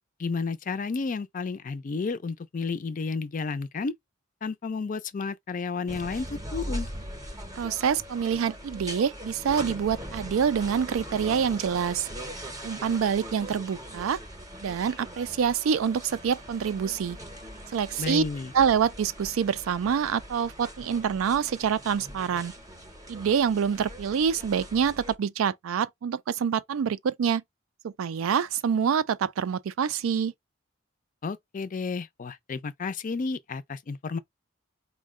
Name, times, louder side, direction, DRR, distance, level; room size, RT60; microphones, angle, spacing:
voice 1, 0.2-3.9 4.4-6.9 18.0-18.5 31.2-34.2, left 4 dB, 40° left, 0.4 m, -32 dB
sound 1, 5.9-25.2, equal, 20° right, 0.7 m, -41 dB
voice 2, 7.5-12.1 12.6-14.2 14.6-17.2 17.7-18.2 18.5-22.5 23.1-27.4 27.8-30.3, right 7 dB, 85° right, 0.4 m, -26 dB
4.4 x 2.1 x 3.5 m
head